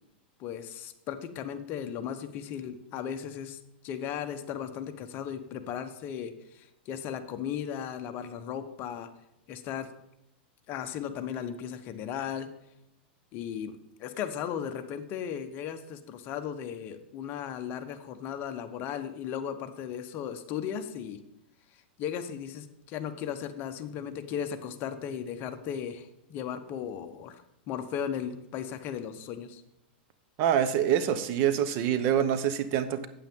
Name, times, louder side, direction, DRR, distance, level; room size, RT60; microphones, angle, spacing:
voice 1, 0.4-9.1 9.5-9.9 10.7-12.5 13.3-13.7 14.0-21.2 22.0-29.6, left 8 dB, 35° left, 0.9 m, -36 dB
voice 2, 30.4-33.1, right 9 dB, 45° right, 0.9 m, -26 dB
8.9 x 8.8 x 3.6 m
hypercardioid pair, 135°, 6 cm